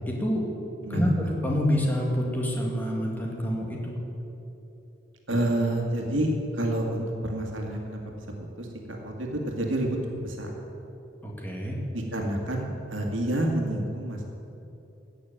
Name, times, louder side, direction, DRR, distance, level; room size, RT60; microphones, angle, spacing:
voice 1, 0.1-0.5 0.9-1.1 1.4-3.9 11.2-11.8, equal, 10° left, -2 dB, 2.2 m, -27 dB
voice 2, 5.3-8.3 8.6-10.0 10.2-10.5 11.9-14.2, right 1 dB, 80° right, 1 dB, 2.0 m, -28 dB
16.5 x 6.6 x 8.8 m, 3.0 s
head